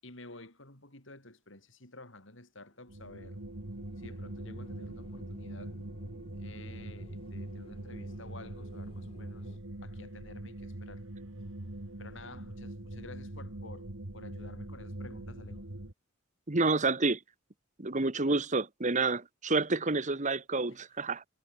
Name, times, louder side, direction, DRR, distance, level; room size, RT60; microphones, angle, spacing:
voice 1, 0.0-3.4 4.0-5.8 6.4-11.1 12.0-15.7 20.7-20.8, left 2 dB, 65° left, 7.3 m, -51 dB
sound 1, 2.7-9.6, equal, 30° left, 6.9 m, -58 dB
sound 2, 2.9-15.9, right 1 dB, 75° right, 2.2 m, -43 dB
voice 2, 16.5-17.2 17.8-21.2, right 3 dB, 35° right, 1.6 m, -29 dB
head